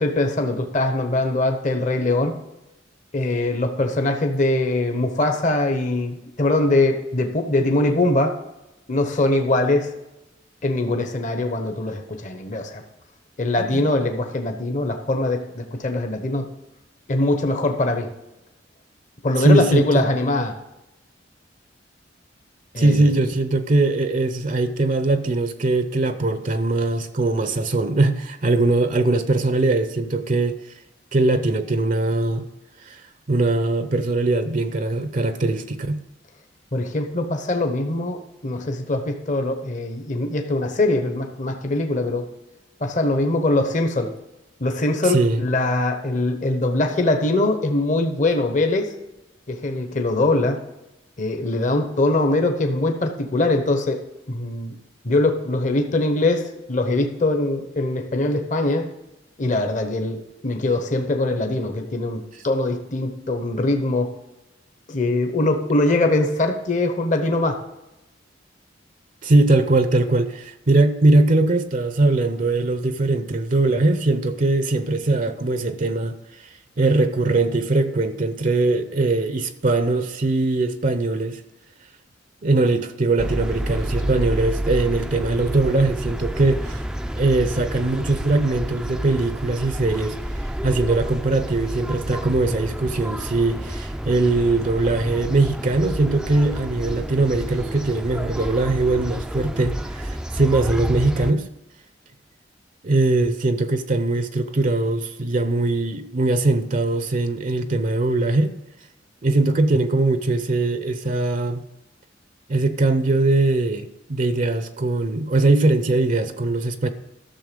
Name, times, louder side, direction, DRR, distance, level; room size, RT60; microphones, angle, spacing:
voice 1, 0.0-2.4 3.1-8.4 8.9-9.9 10.6-12.8 13.4-16.5 17.1-18.1 19.2-20.6 22.7-23.1 36.7-42.3 42.8-44.1 44.6-48.9 49.5-50.6 51.2-54.0 54.3-54.7 55.0-58.9 59.4-64.1 64.9-67.6, left 2 dB, 45° left, 1.0 m, -22 dB
voice 2, 19.4-20.0 22.8-30.6 31.1-32.4 32.8-36.0 45.0-45.4 62.3-62.4 69.2-81.4 82.4-86.8 87.2-90.2 90.6-101.5 102.8-108.5 109.2-111.6 112.5-116.9, right 2 dB, 45° right, 0.6 m, -21 dB
sound 1, 83.2-101.3, equal, 5° right, 0.4 m, -29 dB
13.0 x 6.8 x 5.2 m
head